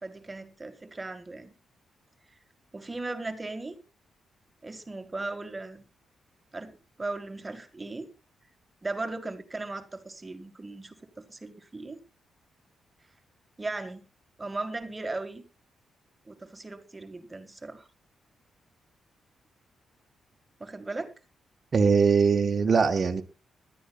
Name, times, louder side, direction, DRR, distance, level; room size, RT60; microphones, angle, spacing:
voice 1, 0.0-1.5 2.7-3.8 4.6-5.8 6.5-8.1 8.8-12.0 13.6-14.0 14.4-15.4 16.3-17.9 20.6-21.1, right 2 dB, 25° right, 7 dB, 1.9 m, -37 dB
voice 2, 21.7-23.2, right 5 dB, 45° right, 3 dB, 1.4 m, -21 dB
20.0 x 11.5 x 2.4 m, 0.30 s
cardioid pair, 75°, 0 cm